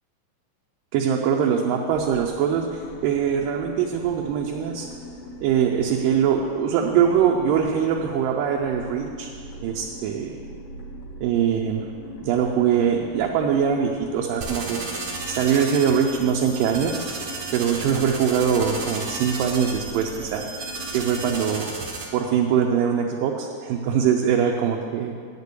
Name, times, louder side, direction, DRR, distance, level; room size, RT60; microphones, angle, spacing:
voice 1, 0.9-4.9 5.4-9.3 9.6-10.4 11.2-11.9 12.2-14.8 15.3-16.9 17.5-20.5 20.9-21.7 22.1-25.1, right 8 dB, 80° right, 0 dB, 2.3 m, -22 dB
sound 1, 1.9-21.5, left 1 dB, 75° left, 2.9 m, -41 dB
sound 2, 14.4-22.1, right 3 dB, 65° right, 1.5 m, -34 dB
9.3 x 6.7 x 8.1 m, 2.1 s
omnidirectional pair, 4.1 m